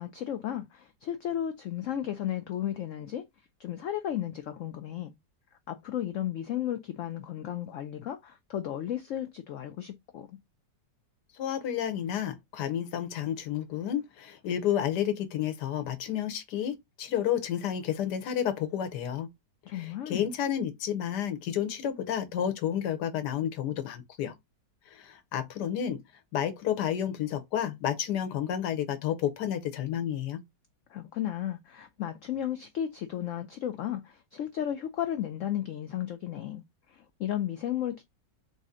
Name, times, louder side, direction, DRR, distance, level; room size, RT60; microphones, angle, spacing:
voice 1, 0.0-3.2 3.6-5.1 5.7-10.4 19.7-20.3 30.9-38.0, left 11 dB, 90° left, 0.6 m, -34 dB
voice 2, 11.4-19.3 19.7-24.3 24.9-26.0 26.3-30.4, left 10 dB, 75° left, 1.4 m, -31 dB
4.1 x 2.7 x 3.6 m
omnidirectional pair, 1.9 m